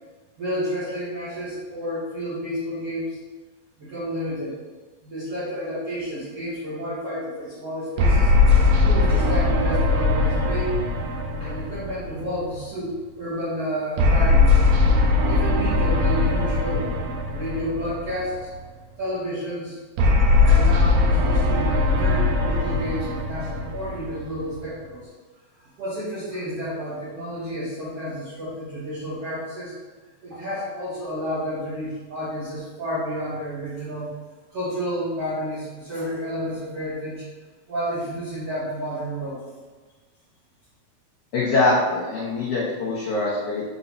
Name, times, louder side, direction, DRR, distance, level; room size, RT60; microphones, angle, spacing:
voice 1, 0.4-3.2 3.8-4.6 5.0-8.3 8.8-10.8 11.4-16.9 17.3-18.5 19.0-19.8 20.4-25.1 25.6-29.7 30.2-34.1 34.5-37.2 37.7-39.4, equal, 60° right, -11 dB, 1.5 m, -31 dB
sound 1, 8.0-12.6 14.0-18.4 20.0-24.5, left 3 dB, 75° right, 2.4 m, -20 dB
voice 2, 41.3-43.7, left 2 dB, 80° left, -7 dB, 1.7 m, -23 dB
6.6 x 4.2 x 4.1 m, 1.4 s
omnidirectional pair, 5.1 m